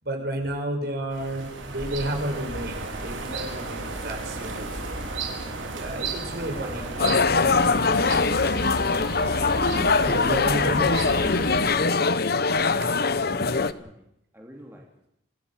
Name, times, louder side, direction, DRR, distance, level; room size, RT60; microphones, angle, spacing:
voice 1, 0.0-4.8 5.7-6.9 9.9-11.2, right 1 dB, 55° right, 3 dB, 5.9 m, -31 dB
sound 1, 1.1-11.6, right 2 dB, 85° right, 4.9 m, -33 dB
voice 2, 6.5-7.8 13.1-14.1 14.3-14.9, equal, 10° right, 0 dB, 2.9 m, -43 dB
sound 2, 7.0-13.7, left 4 dB, 55° left, 1.0 m, -22 dB
27.0 x 16.0 x 7.5 m, 0.77 s
head